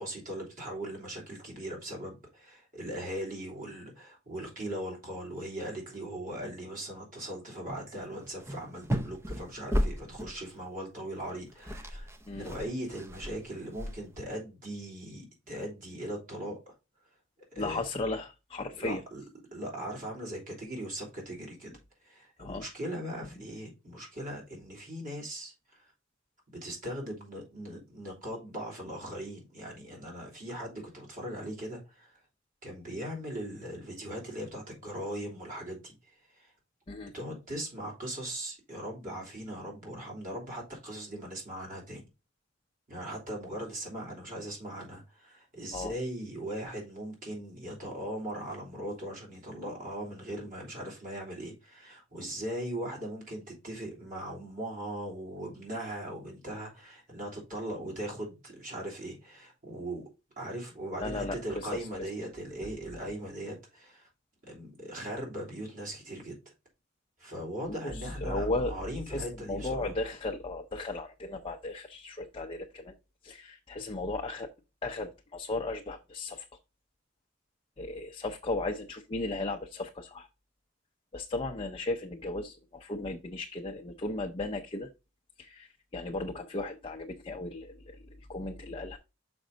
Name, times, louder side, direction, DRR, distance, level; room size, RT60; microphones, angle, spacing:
voice 1, 0.0-16.7 17.5-17.8 18.8-19.2 19.5-21.7 22.0-25.8 26.5-32.1 32.6-35.9 36.4-36.5 37.1-42.0 42.9-60.0 60.4-64.1 64.5-66.4 67.2-70.0, right 1 dB, 45° right, 3.3 m, -39 dB
sound 1, 7.7-7.8 8.1-10.5 11.2-11.3 11.5-14.3, equal, 15° right, 0.6 m, -34 dB
voice 2, 17.6-19.0 22.4-22.6 36.9-37.1 45.7-45.9 61.0-62.1 67.9-68.7 69.1-72.9 73.2-74.5 74.8-76.4 77.8-80.3 81.1-84.9 85.4-85.7 85.9-88.0 88.3-89.0, left 2 dB, 30° left, 0.6 m, -35 dB
6.2 x 5.2 x 3.8 m
head